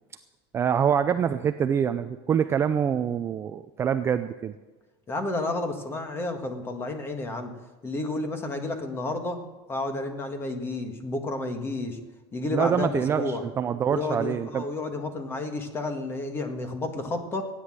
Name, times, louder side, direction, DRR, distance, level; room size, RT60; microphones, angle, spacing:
voice 1, 0.5-4.5 12.5-14.7, right 8 dB, 20° right, 9 dB, 0.4 m, -25 dB
voice 2, 5.1-7.5 7.8-9.4 9.7-12.0 12.3-13.4 13.9-17.5, left 2 dB, 20° left, 6 dB, 1.7 m, -31 dB
16.0 x 9.9 x 7.6 m, 1.2 s
supercardioid pair, 160°, 13 cm